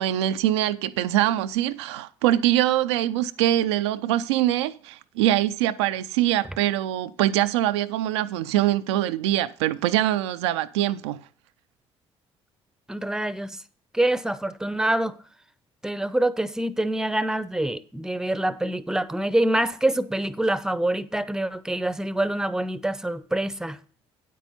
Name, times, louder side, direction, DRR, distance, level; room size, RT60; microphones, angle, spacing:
voice 1, 0.0-11.2, right 13 dB, 70° right, 0.5 m, -23 dB
voice 2, 12.9-13.6 13.9-15.2 15.8-23.8, right 1 dB, 5° right, 0.7 m, -25 dB
9.5 x 8.3 x 4.1 m
figure-of-eight pair, 50°, 15 cm